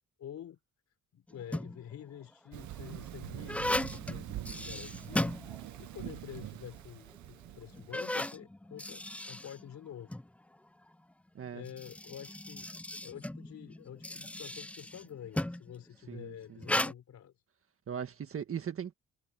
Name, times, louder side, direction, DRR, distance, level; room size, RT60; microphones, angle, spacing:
voice 1, 0.2-0.6 1.1-5.3 5.8-10.1 11.5-12.7 13.0-17.3, left 9 dB, 65° left, 4.1 m, -48 dB
sound 1, 1.3-1.9 2.6-6.0 6.3-6.4 7.1-7.2 7.7-10.3 11.5-15.7 16.6-16.9, left 1 dB, 5° left, 0.5 m, -36 dB
Thunder, 2.5-7.9, right 14 dB, 70° right, 0.9 m, -44 dB
voice 2, 16.1-16.6 17.9-18.9, right 8 dB, 45° right, 1.7 m, -39 dB
cardioid pair, 90°, 30 cm